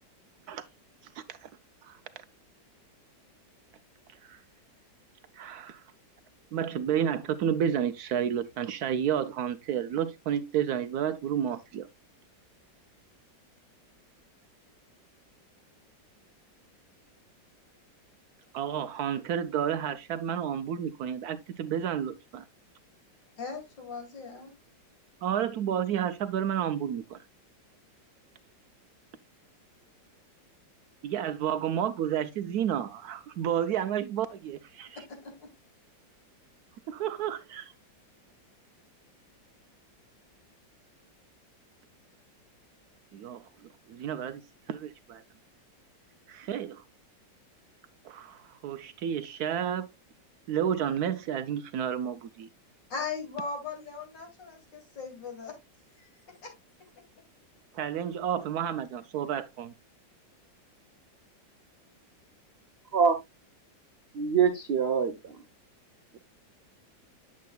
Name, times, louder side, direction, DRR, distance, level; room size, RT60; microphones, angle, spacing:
voice 1, 1.0-1.5 1.8-2.0 4.2-4.4 5.3-5.8 6.5-11.9 18.5-22.5 25.2-27.2 31.0-35.0 36.9-37.7 43.1-43.5 43.9-44.4 44.7-45.2 46.3-46.8 48.0-49.9 50.5-52.5 57.7-59.7, right 9 dB, 70° right, 0.9 m, -31 dB
voice 2, 23.4-24.5 34.9-35.5 52.9-55.6 56.0-56.1 56.4-56.6 57.0-57.1, left 5 dB, 75° left, 3.0 m, -39 dB
voice 3, 64.1-65.4, right 6 dB, 90° right, 0.5 m, -25 dB
8.4 x 7.4 x 2.3 m
omnidirectional pair, 2.0 m